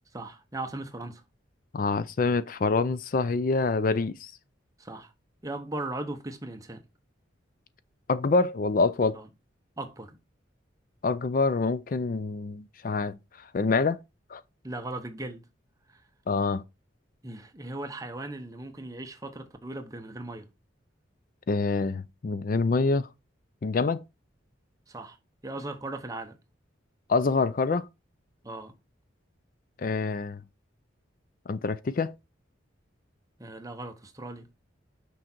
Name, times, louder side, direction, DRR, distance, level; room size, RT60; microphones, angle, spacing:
voice 1, 0.1-1.2 4.8-5.1 5.4-6.8 9.1-9.3 9.8-10.2 14.6-15.4 15.9-16.0 17.2-20.5 24.9-25.2 25.4-26.4 28.4-28.7 33.4-34.5, right 2 dB, 15° right, 0.9 m, -38 dB
voice 2, 1.7-4.3 8.1-9.2 11.0-14.0 14.3-14.4 16.3-16.6 21.5-23.1 23.6-24.0 27.1-27.9 29.8-30.4 31.5-32.1, left 3 dB, 45° left, 0.4 m, -26 dB
6.2 x 5.5 x 4.4 m
head